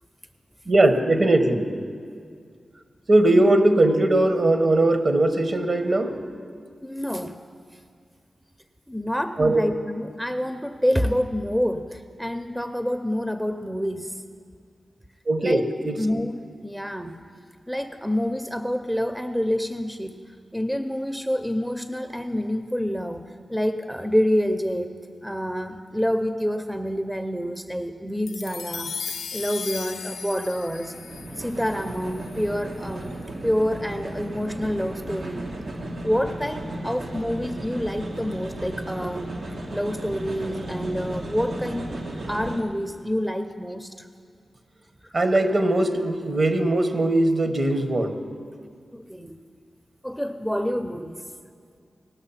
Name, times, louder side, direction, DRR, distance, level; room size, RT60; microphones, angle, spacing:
voice 1, 0.7-1.7 3.1-6.1 9.4-9.6 15.3-16.0 45.1-48.2, right 1 dB, 50° right, 7 dB, 1.2 m, -20 dB
voice 2, 6.8-7.4 8.9-14.2 15.4-15.7 16.0-17.2 17.7-20.2 20.5-31.0 31.3-35.5 36.0-39.3 39.7-41.9 42.3-44.1 48.9-49.4 50.0-51.2, equal, 5° right, 8 dB, 0.6 m, -27 dB
sound 1, 28.3-32.8, left 6 dB, 90° left, 0.4 m, -36 dB
sound 2, 30.6-42.6, right 1 dB, 90° right, 1.4 m, -35 dB
18.5 x 6.3 x 5.7 m, 2.2 s
cardioid pair, 60°, 0 cm